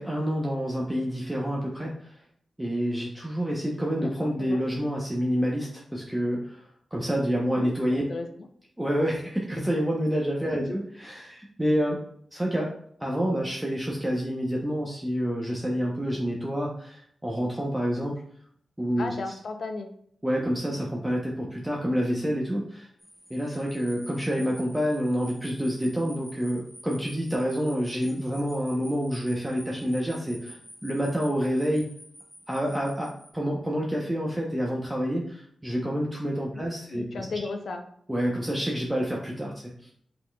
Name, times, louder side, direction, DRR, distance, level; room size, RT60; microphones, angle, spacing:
voice 1, 0.0-2.2 2.6-6.6 6.9-8.0 8.8-12.0 12.3-12.7 13.0-18.2 18.8-19.1 20.2-22.9 23.3-31.9 32.5-37.2 38.1-39.9, equal, 10° right, -3 dB, 0.8 m, -28 dB
voice 2, 4.0-4.6 7.5-8.5 10.5-10.8 19.0-19.9 36.5-37.8, left 3 dB, 75° left, 5 dB, 0.5 m, -36 dB
sound 1, 23.0-33.3, equal, 5° left, 1.9 m, -49 dB
5.7 x 3.9 x 2.3 m, 0.65 s
cardioid pair, 70°, 0 cm